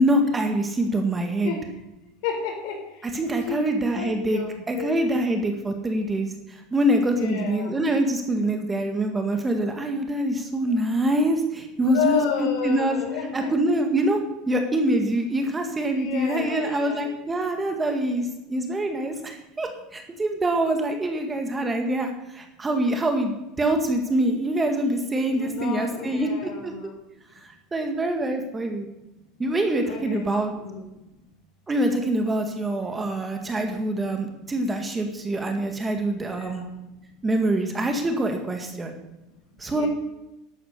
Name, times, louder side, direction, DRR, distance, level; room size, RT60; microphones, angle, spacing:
voice 1, 0.0-1.5 3.1-4.4 4.7-13.0 13.3-14.2 14.5-26.7 27.4-28.9 29.4-30.5 31.7-36.6 37.2-39.0 39.6-39.9, right 1 dB, 15° right, 4 dB, 1.7 m, -25 dB
voice 2, 2.2-2.8 3.4-4.9 7.1-7.7 11.9-13.5 15.9-17.1 25.2-26.9 29.8-30.3 30.6-30.9 36.2-36.6 39.7-39.9, left 7 dB, 65° left, 1 dB, 5.0 m, -31 dB
12.0 x 8.7 x 6.6 m, 0.96 s
supercardioid pair, 130°, 0 cm